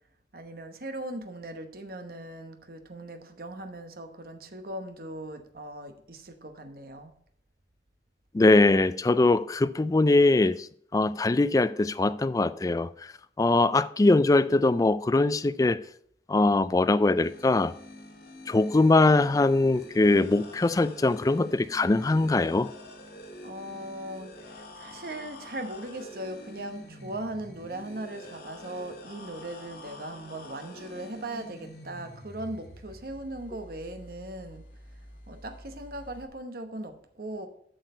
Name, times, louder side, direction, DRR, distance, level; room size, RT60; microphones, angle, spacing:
voice 1, 0.3-7.1 23.4-34.6 35.3-37.5, right 1 dB, 55° right, 1.0 m, -39 dB
voice 2, 8.3-10.7 10.9-12.9 13.4-15.8 16.3-17.7 18.5-22.7, left 2 dB, 20° left, 0.3 m, -22 dB
sound 1, 17.2-36.3, left 1 dB, 60° left, 1.7 m, -47 dB
7.8 x 6.4 x 5.4 m
head